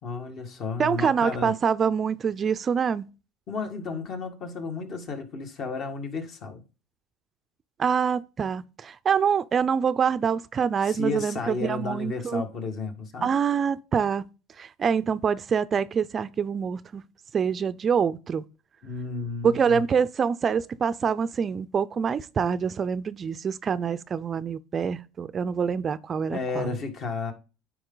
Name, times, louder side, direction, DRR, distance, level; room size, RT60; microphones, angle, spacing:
voice 1, 0.0-1.5 3.5-6.6 10.8-13.3 18.8-19.8 26.3-27.3, left 4 dB, 45° left, 1.7 m, -33 dB
voice 2, 0.8-3.0 7.8-12.4 13.2-14.2 14.6-17.0 17.3-18.4 19.4-26.7, right 6 dB, 30° right, 0.4 m, -25 dB
9.7 x 4.7 x 3.9 m
supercardioid pair, 115°, 0 cm